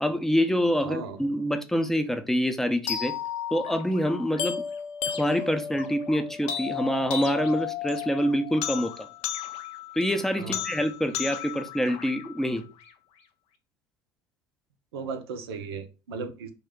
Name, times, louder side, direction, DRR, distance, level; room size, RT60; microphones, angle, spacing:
voice 1, 0.0-3.1 3.5-4.6 5.1-9.1 10.0-12.7, equal, 5° left, 0.5 m, -26 dB
voice 2, 0.8-1.2 10.4-10.6 14.9-16.5, right 5 dB, 80° right, 0.5 m, -36 dB
sound 1, 2.9-12.9, left 9 dB, 55° left, 0.5 m, -34 dB
3.0 x 2.2 x 3.5 m
hypercardioid pair, 70°, 13 cm